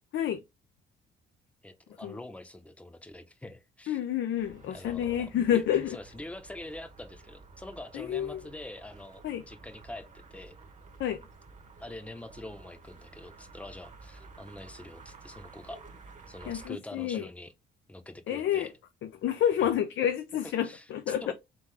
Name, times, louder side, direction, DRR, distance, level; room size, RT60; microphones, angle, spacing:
voice 1, 1.6-4.0 4.7-10.1 10.3-10.6 11.8-15.8 16.3-17.5 17.9-18.7 19.6-19.7 20.6-21.3, left 1 dB, 5° left, 0.8 m, -45 dB
voice 2, 3.9-6.0 7.9-8.4 9.2-9.4 11.0-11.2 16.5-17.2 18.3-18.7 19.2-21.3, left 10 dB, 70° left, 0.6 m, -29 dB
sound 1, 4.4-16.7, right 3 dB, 40° right, 1.1 m, -52 dB
3.8 x 3.5 x 3.3 m
cardioid pair, 90°, 20 cm